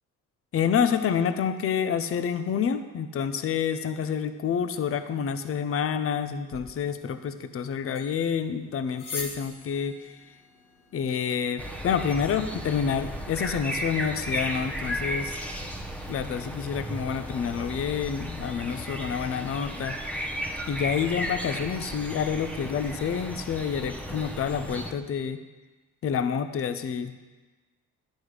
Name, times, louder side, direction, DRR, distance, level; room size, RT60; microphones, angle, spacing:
voice 1, 0.5-10.2 10.9-15.4 16.1-20.0 20.7-25.4 26.0-27.1, left 7 dB, 50° left, 10 dB, 0.6 m, -28 dB
sound 1, 6.5-12.5, left 3 dB, 85° left, 1.6 m, -44 dB
sound 2, 11.6-24.9, equal, 5° left, 0.9 m, -35 dB
9.4 x 6.3 x 4.9 m, 1.2 s
cardioid pair, 90°, 30 cm